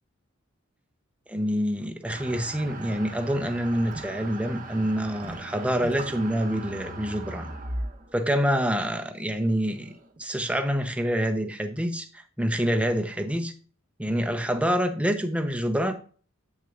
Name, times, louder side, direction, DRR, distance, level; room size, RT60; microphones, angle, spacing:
voice 1, 1.3-7.5 8.1-9.9 10.2-13.5 14.0-15.9, equal, 5° right, 6 dB, 0.7 m, -26 dB
sound 1, 2.1-10.2, right 2 dB, 40° right, 0.9 m, -39 dB
8.2 x 6.2 x 2.5 m, 0.41 s
head